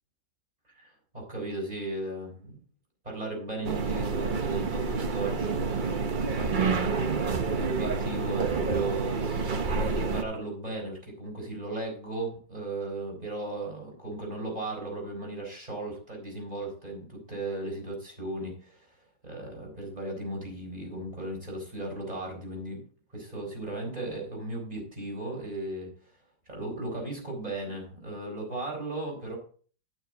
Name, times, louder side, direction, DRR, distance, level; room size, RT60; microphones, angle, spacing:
voice 1, 0.7-2.6 3.0-5.8 6.3-9.3 9.7-18.9 19.2-22.8 23.1-25.9 26.5-29.4, right 2 dB, 20° right, 0 dB, 4.1 m, -36 dB
sound 1, 3.6-10.2, right 4 dB, 65° right, 0.5 m, -28 dB
9.8 x 9.1 x 3.7 m, 0.43 s
omnidirectional pair, 2.1 m